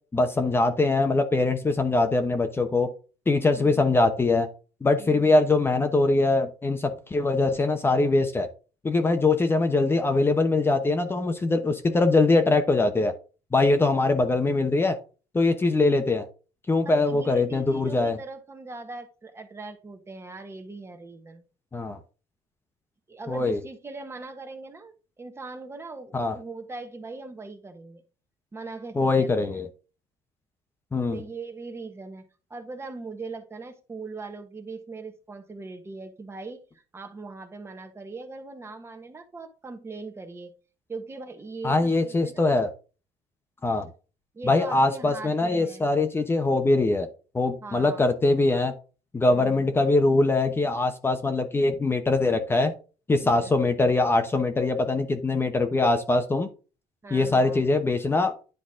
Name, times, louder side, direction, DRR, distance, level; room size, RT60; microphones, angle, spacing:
voice 1, 0.1-2.9 3.3-4.5 4.8-8.5 8.8-13.1 13.5-15.0 15.3-16.3 16.7-18.2 21.7-22.0 23.3-23.6 26.1-26.4 28.9-29.7 30.9-31.2 41.6-42.7 43.6-43.9 44.4-47.1 47.3-48.7 49.1-52.7 53.1-56.5 57.1-58.4, left 2 dB, 20° left, 1.0 m, -22 dB
voice 2, 3.6-3.9 5.0-5.3 16.8-21.4 23.1-28.0 28.5-29.6 31.1-32.2 32.5-40.5 40.9-42.4 44.3-45.9 47.6-48.0 49.3-49.8 53.2-53.6 57.0-57.6, right 3 dB, 20° right, 1.3 m, -40 dB
10.5 x 4.1 x 3.7 m
cardioid pair, 120°, 12 cm